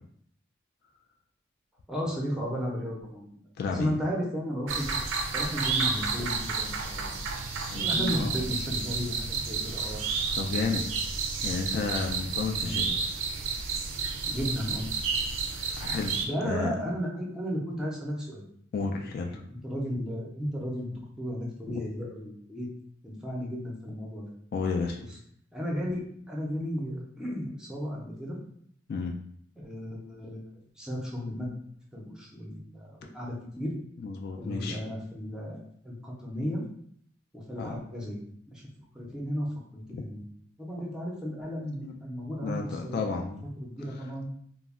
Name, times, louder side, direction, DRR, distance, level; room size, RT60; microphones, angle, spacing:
voice 1, 1.9-3.4 3.7-5.0 5.3-7.2 7.7-10.0 12.6-12.8 14.3-14.8 16.2-18.5 19.0-22.7 23.0-24.3 25.0-25.1 25.5-28.4 29.6-31.5 31.9-33.7 34.4-36.6 37.3-38.2 38.5-38.6 38.9-40.2 40.6-44.3, equal, 5° right, -4 dB, 0.5 m, -34 dB
voice 2, 3.6-3.9 7.7-8.3 10.4-10.8 11.4-13.0 15.8-16.2 16.4-16.7 18.7-19.4 21.7-21.8 24.5-25.0 28.9-29.1 34.0-34.8 37.6-37.8 39.9-40.0 41.8-41.9 42.4-43.5, left 4 dB, 55° left, 2 dB, 0.3 m, -32 dB
sound 1, 4.7-16.3, right 5 dB, 80° right, 0.4 m, -31 dB
2.3 x 2.0 x 3.5 m, 0.66 s
head